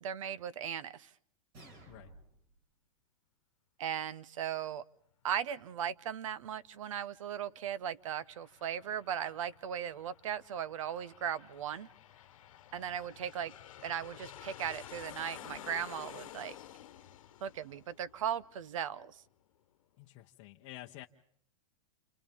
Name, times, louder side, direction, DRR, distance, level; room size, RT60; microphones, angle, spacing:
voice 1, 0.0-1.1 3.8-4.8 5.2-11.9 12.7-13.5 13.8-16.6 17.4-19.2, right 9 dB, 70° right, 18 dB, 1.0 m, -37 dB
sound 1, 1.5-2.5, right 2 dB, 40° right, 5.0 m, -54 dB
Aircraft, 7.9-19.1, left 12 dB, 75° left, 1.1 m, -52 dB
voice 2, 20.0-21.1, left 15 dB, 30° left, 1 dB, 0.8 m, -50 dB
30.0 x 28.5 x 3.6 m, 0.64 s
supercardioid pair, 170°, 17 cm